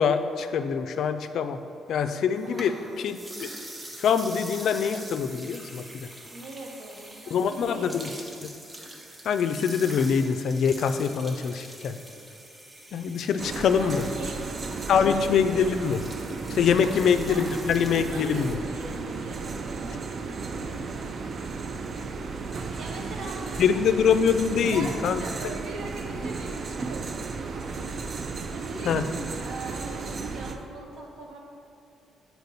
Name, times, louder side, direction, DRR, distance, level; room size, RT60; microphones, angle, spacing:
voice 1, 0.0-1.6 1.9-3.5 4.0-5.8 7.3-8.1 9.3-12.0 12.9-14.1 14.9-16.0 16.5-18.5 23.6-25.2 28.9-29.0, left 7 dB, 70° left, 9 dB, 0.3 m, -24 dB
sound 1, 2.3-18.6, right 1 dB, 25° right, 0.9 m, -44 dB
voice 2, 2.4-3.1 6.2-8.4 13.5-15.4 16.7-17.5 17.9-21.2 22.8-24.0 24.5-28.0 28.5-31.4, right 2 dB, 75° right, -1 dB, 1.1 m, -41 dB
sound 2, 13.4-30.6, right 4 dB, 50° right, 0.4 m, -34 dB
6.8 x 4.4 x 4.0 m, 2.6 s
cardioid pair, 90°, 0 cm